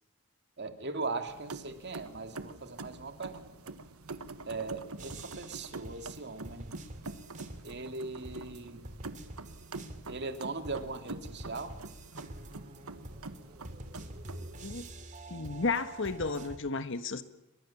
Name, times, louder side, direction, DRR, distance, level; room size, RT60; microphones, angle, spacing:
voice 1, 0.6-3.7 4.5-6.7 7.6-8.8 10.1-11.8, right 3 dB, 50° right, 7 dB, 2.4 m, -39 dB
sound 1, 1.3-14.7, right 3 dB, 90° right, 1.4 m, -46 dB
sound 2, 5.0-8.0 8.2-10.4 10.6-16.6, right 1 dB, 35° right, 2.8 m, -47 dB
voice 2, 15.3-17.2, left 4 dB, 60° left, 11 dB, 1.4 m, -33 dB
29.0 x 23.5 x 7.2 m, 0.87 s
head